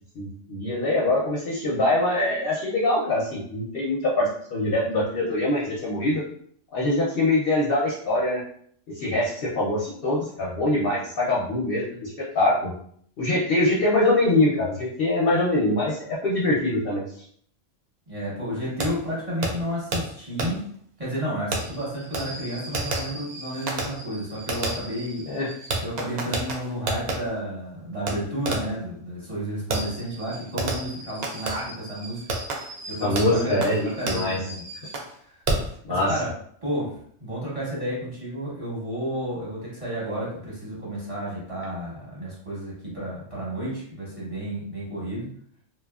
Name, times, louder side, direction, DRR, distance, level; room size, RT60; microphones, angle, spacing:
voice 1, 0.2-6.2 6.7-8.4 8.9-12.7 13.2-17.0 25.3-25.5 33.0-34.4 35.9-36.1, left 2 dB, 60° left, -4 dB, 0.7 m, -23 dB
voice 2, 18.1-20.6 21.0-25.3 25.8-32.2 32.5-34.6 35.2-35.4 35.9-36.3 36.6-45.3, equal, 30° right, -7 dB, 0.9 m, -31 dB
Fireworks, 18.8-18.9 19.4-19.5 19.9-20.0 20.4-20.5 21.5-27.2 28.1-28.2 28.5-28.8 29.7-35.1 35.5-35.8, right 2 dB, 70° right, 0.4 m, -31 dB
2.8 x 2.3 x 2.3 m, 0.63 s
omnidirectional pair, 1.3 m